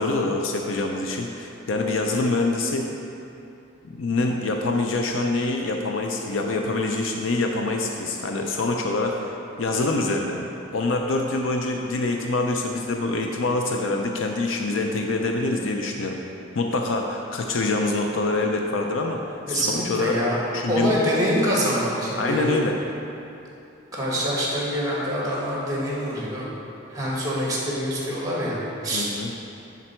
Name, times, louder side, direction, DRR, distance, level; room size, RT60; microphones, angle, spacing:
voice 1, 0.0-2.9 3.8-10.4 10.7-16.2 16.6-19.2 19.5-20.2 20.5-21.0 22.2-22.7 28.9-29.3, left 2 dB, 75° left, 2 dB, 0.5 m, -25 dB
voice 2, 19.5-20.4 20.7-22.5 23.9-26.5 26.9-29.1, equal, 20° right, -5 dB, 1.7 m, -25 dB
10.5 x 4.0 x 4.4 m, 2.8 s
head